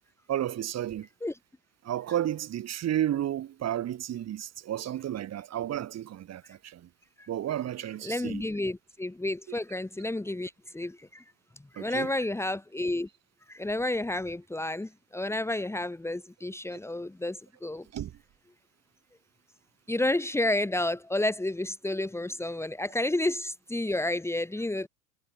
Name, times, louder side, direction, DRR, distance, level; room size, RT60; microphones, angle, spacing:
voice 1, 0.3-1.1 1.8-6.9 7.3-8.5 11.8-12.1 16.7-16.8 17.9-18.1, right 11 dB, 35° right, 6.1 m, -32 dB
voice 2, 8.0-11.2 11.7-13.1 13.5-17.8 19.9-24.9, left 1 dB, 5° left, 3.4 m, -30 dB
hypercardioid pair, 95°, 44 cm